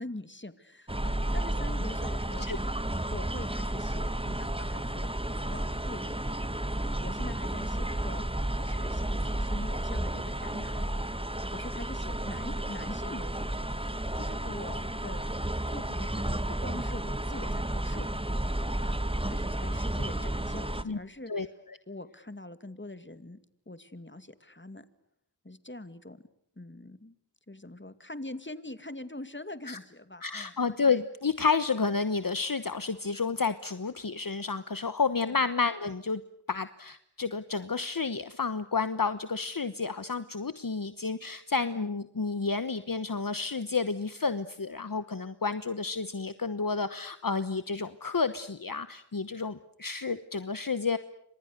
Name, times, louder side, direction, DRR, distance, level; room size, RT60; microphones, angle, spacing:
voice 1, 0.0-2.5 3.1-5.1 5.5-6.1 6.8-8.3 8.5-10.9 11.5-15.2 15.7-18.1 18.8-19.0 19.3-21.3 21.9-23.4 23.7-24.8 25.4-26.2 26.6-27.2 27.5-30.5 35.2-35.4, left 1 dB, 25° left, 11 dB, 2.5 m, -43 dB
sound 1, 0.9-20.8, right 1 dB, 10° right, 1.6 m, -32 dB
voice 2, 30.2-36.2 36.5-51.0, left 4 dB, 50° left, 12 dB, 1.1 m, -30 dB
29.5 x 26.0 x 6.7 m, 0.72 s
wide cardioid pair, 40°, 44 cm